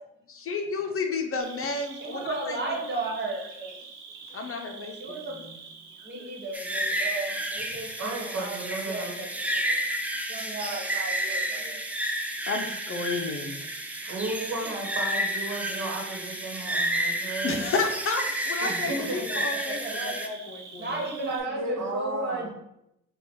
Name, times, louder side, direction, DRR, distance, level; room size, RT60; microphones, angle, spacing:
voice 1, 0.3-2.8 4.3-5.5 12.5-13.6 17.4-21.0, left 3 dB, 45° left, 4 dB, 0.7 m, -31 dB
Cricket, 1.4-21.4, right 5 dB, 80° right, 0.9 m, -45 dB
voice 2, 2.0-3.5 4.9-5.5 6.0-8.6 8.9-9.8 10.2-11.8 14.0-14.2 18.7-18.9 19.7-20.1 20.8-22.5, right 2 dB, 35° right, -1 dB, 1.4 m, -34 dB
sound 1, 6.5-20.3, right 1 dB, 5° right, 0.5 m, -31 dB
voice 3, 8.0-9.2 14.1-17.7 18.6-19.4 20.9-22.5, right 2 dB, 60° right, 1 dB, 1.2 m, -34 dB
4.3 x 2.4 x 4.4 m, 0.83 s
cardioid pair, 90°, 30 cm